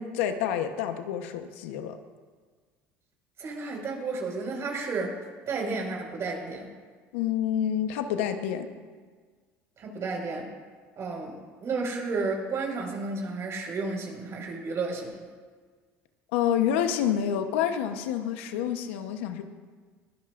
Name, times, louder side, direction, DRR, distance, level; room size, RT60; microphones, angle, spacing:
voice 1, 0.0-2.0 7.1-8.7 16.3-19.5, left 9 dB, 85° left, 7 dB, 1.0 m, -28 dB
voice 2, 3.4-5.2 5.5-6.7 9.8-10.5 11.0-15.2, right 3 dB, 45° right, 0 dB, 5.2 m, -32 dB
22.0 x 16.5 x 2.6 m, 1.5 s
supercardioid pair, 85°, 7 cm